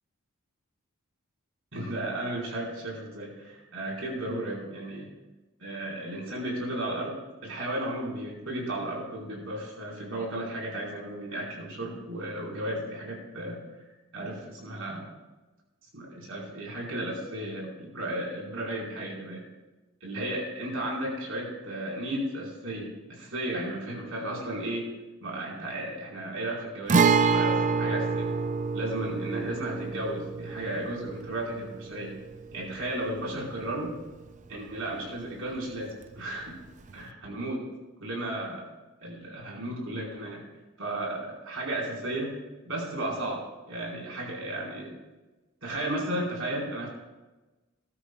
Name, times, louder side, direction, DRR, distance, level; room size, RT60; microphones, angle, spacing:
voice 1, 1.7-5.1 5.6-7.1 7.4-13.6 14.1-15.1 15.9-19.4 20.0-24.9 25.2-28.3 28.7-32.1 32.5-33.9 34.5-36.5 36.9-37.6 38.0-38.6 39.0-40.4 40.8-42.4 42.6-44.9 45.6-46.9, right 1 dB, 70° right, -3 dB, 4.5 m, -34 dB
Guitar, 26.9-34.5 34.8-34.9 36.9-37.0, right 5 dB, 35° right, 0.4 m, -28 dB
19.5 x 12.5 x 2.3 m, 1.1 s
head